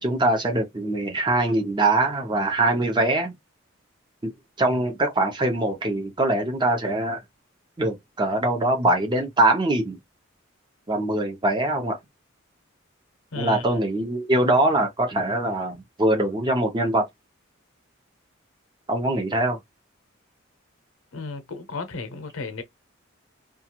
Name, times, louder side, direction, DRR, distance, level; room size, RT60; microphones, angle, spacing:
voice 1, 0.0-3.3 4.2-4.3 4.6-7.2 7.8-10.0 10.9-12.0 13.4-17.0 18.9-19.6, right 2 dB, 20° right, 0.8 m, -23 dB
voice 2, 13.3-13.6 21.1-22.6, left 3 dB, 70° left, 0.7 m, -33 dB
2.4 x 2.3 x 2.8 m
head